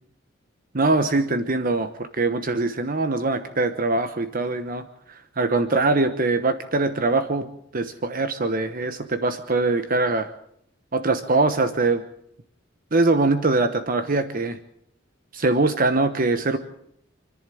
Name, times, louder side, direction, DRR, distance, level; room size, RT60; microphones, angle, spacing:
voice 1, 0.7-1.9 2.2-4.8 5.4-10.3 10.9-12.0 12.9-14.6 15.3-16.6, right 3 dB, 45° right, 10 dB, 1.1 m, -22 dB
28.0 x 11.0 x 8.5 m, 0.73 s
head